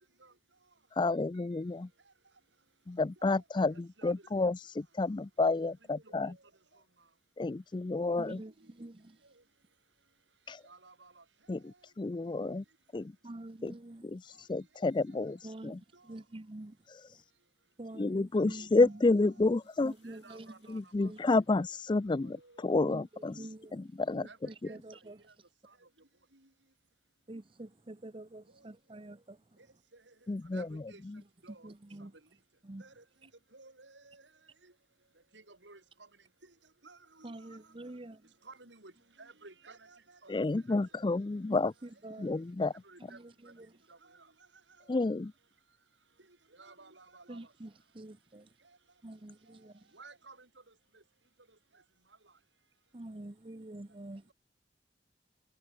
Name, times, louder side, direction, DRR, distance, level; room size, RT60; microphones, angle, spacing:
voice 1, 0.9-1.9 2.9-6.4 7.4-8.4 10.5-10.6 11.5-12.6 12.9-13.2 13.6-13.7 14.0-14.2 14.5-15.8 18.0-19.9 20.7-23.3 23.7-24.3 30.3-31.2 40.3-41.7 42.2-42.7 44.9-45.3, left 3 dB, 25° left, 0.4 m, -30 dB
voice 2, 5.9-6.3 10.7-11.2 18.4-18.7 20.1-21.1 21.6-21.7 22.2-22.7 24.3-24.4 24.7-24.8 30.5-31.0 31.4-31.7 32.8-33.0 33.5-34.2 35.3-35.8 36.8-37.3 38.5-38.9 39.2-40.8 42.9-43.2 43.9-44.0 46.6-47.4 49.9-50.4, right 3 dB, 90° right, 5.4 m, -54 dB
voice 3, 8.2-9.4 13.2-14.5 15.4-17.2 17.8-19.0 19.8-20.7 21.0-21.2 22.9-23.9 24.1-25.5 27.3-29.8 31.5-32.2 32.6-32.9 33.2-33.3 37.2-38.3 41.5-42.4 43.1-43.8 47.3-48.6 49.0-50.0 52.9-54.3, right 1 dB, 30° right, 0.8 m, -47 dB
sound 1, 18.4-23.5, left 6 dB, 75° left, 6.1 m, -74 dB
head